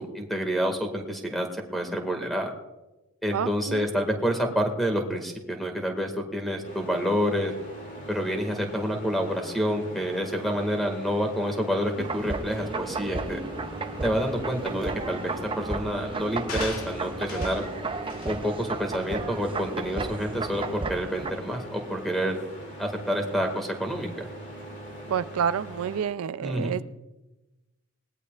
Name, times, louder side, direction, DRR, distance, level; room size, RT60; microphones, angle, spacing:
voice 1, 0.0-2.5 3.2-7.5 8.1-13.4 14.0-17.6 18.2-22.4 22.8-24.3 26.4-26.8, equal, ahead, 4 dB, 1.8 m, -28 dB
voice 2, 3.3-3.9 25.1-26.8, right 7 dB, 80° right, 15 dB, 0.4 m, -28 dB
sound 1, 6.6-26.0, right 1 dB, 35° left, 3.1 m, -41 dB
sound 2, 12.0-21.3, right 3 dB, 25° right, 0.6 m, -33 dB
sound 3, 16.5-17.7 18.1-18.4 18.9-19.0, left 4 dB, 90° left, 2.2 m, -38 dB
20.5 x 17.5 x 2.4 m, 1.1 s
head